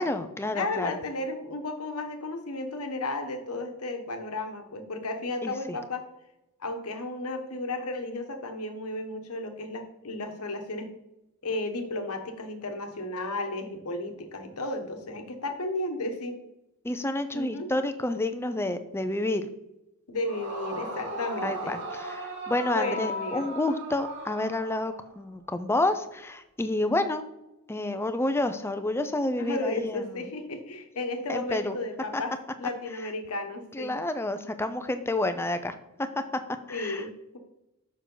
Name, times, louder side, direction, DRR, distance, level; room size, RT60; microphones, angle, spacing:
voice 1, 0.0-0.9 5.4-5.8 16.8-19.5 21.4-27.2 27.7-30.0 31.3-31.7 32.1-32.2 33.7-35.7 36.7-37.1, left 2 dB, 10° left, 9 dB, 0.5 m, -29 dB
voice 2, 0.5-6.0 6.6-10.9 11.4-16.4 17.3-17.7 20.1-21.7 22.7-23.4 29.4-32.3 32.6-33.9 36.7-37.4, left 2 dB, 70° left, 5 dB, 1.1 m, -33 dB
Yell / Screaming, 20.2-25.1, right 1 dB, 55° right, 1.9 m, -36 dB
7.0 x 5.9 x 3.9 m, 0.89 s
head